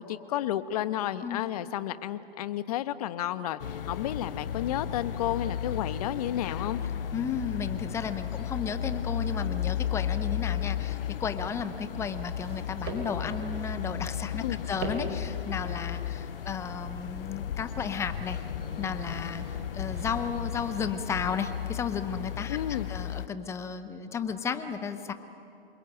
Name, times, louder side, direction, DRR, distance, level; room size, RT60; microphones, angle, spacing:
voice 1, 0.0-6.8 14.4-14.6 22.5-22.9, left 12 dB, 40° left, 13 dB, 1.1 m, -32 dB
sound 1, 3.6-23.3, left 9 dB, 65° left, 0.6 m, -34 dB
voice 2, 7.1-18.4 18.8-25.1, left 6 dB, 10° left, 11 dB, 0.7 m, -34 dB
sound 2, 12.4-21.7, right 2 dB, 35° right, 4.8 m, -43 dB
sound 3, 16.5-22.1, right 4 dB, 75° right, 3.2 m, -53 dB
27.5 x 22.0 x 9.1 m, 2.8 s
hypercardioid pair, 135°, 31 cm